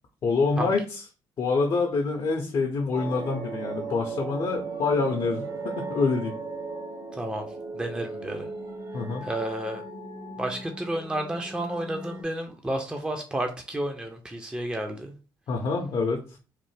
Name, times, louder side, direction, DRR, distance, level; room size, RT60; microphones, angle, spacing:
voice 1, 0.2-1.0 1.4-6.3 8.9-9.3 15.5-16.2, left 4 dB, 55° left, 1 dB, 0.6 m, -26 dB
sound 1, 2.9-12.2, right 3 dB, 45° right, 0.8 m, -37 dB
voice 2, 7.1-7.5 7.7-8.5 9.2-9.8 10.4-15.1, right 1 dB, 10° right, 4 dB, 0.5 m, -31 dB
3.2 x 2.0 x 3.2 m, 0.34 s
supercardioid pair, 60°, 10 cm